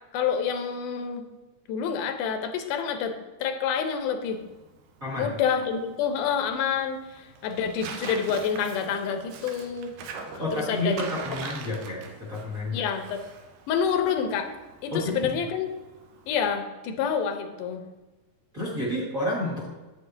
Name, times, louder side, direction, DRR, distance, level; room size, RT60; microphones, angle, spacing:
voice 1, 0.1-1.2 1.7-3.1 3.4-4.4 5.2-9.9 10.5-11.0 12.7-13.2 13.7-14.5 14.8-15.7 16.3-17.9, left 7 dB, 85° left, 7 dB, 2.2 m, -28 dB
Tearing, 4.3-16.6, right 5 dB, 80° right, 2.3 m, -43 dB
voice 2, 5.0-5.3 10.4-12.9 14.9-15.0 15.3-15.4 18.5-19.7, left 1 dB, 35° right, -7 dB, 1.5 m, -30 dB
8.3 x 7.9 x 2.7 m, 1.2 s
omnidirectional pair, 3.7 m